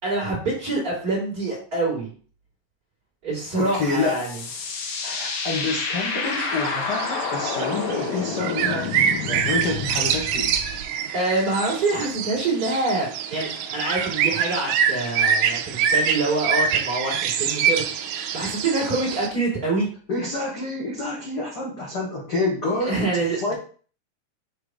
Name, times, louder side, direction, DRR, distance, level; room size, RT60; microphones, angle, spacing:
voice 1, 0.0-2.1 3.2-4.3 11.1-19.9 22.9-23.5, right 2 dB, 30° right, -5 dB, 2.8 m, -25 dB
voice 2, 3.5-4.2 5.0-10.6 20.1-23.5, left 3 dB, 50° left, -5 dB, 1.3 m, -28 dB
sound 1, 3.7-10.8, left 5 dB, 90° left, 2.8 m, -30 dB
sound 2, 6.2-19.3, right 7 dB, 80° right, 1.8 m, -25 dB
6.6 x 3.4 x 4.7 m, 0.42 s
omnidirectional pair, 3.8 m